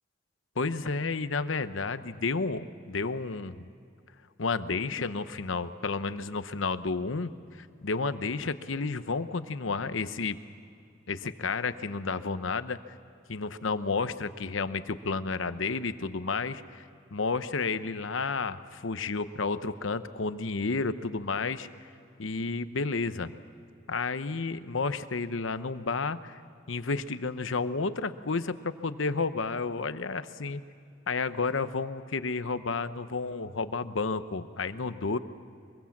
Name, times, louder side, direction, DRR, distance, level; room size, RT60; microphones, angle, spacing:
voice 1, 0.6-3.7 4.4-10.4 11.1-12.8 13.3-16.8 17.1-21.7 22.2-23.3 23.9-26.4 26.7-30.6 31.1-35.2, left 4 dB, 80° left, 12 dB, 0.9 m, -31 dB
24.0 x 22.5 x 7.3 m, 2.4 s
head